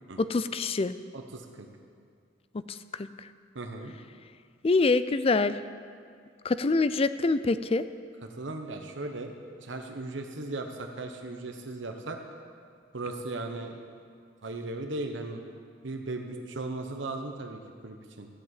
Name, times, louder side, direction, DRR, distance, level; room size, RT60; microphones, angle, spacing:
voice 1, 0.2-0.9 2.7-3.1 4.6-5.6 6.4-7.8, left 3 dB, 30° left, 13 dB, 0.4 m, -25 dB
voice 2, 1.1-1.7 3.5-3.9 8.2-12.2 12.9-13.8 14.4-15.4 15.8-18.3, right 2 dB, 70° right, 4 dB, 1.0 m, -37 dB
13.5 x 7.6 x 8.2 m, 2.2 s
head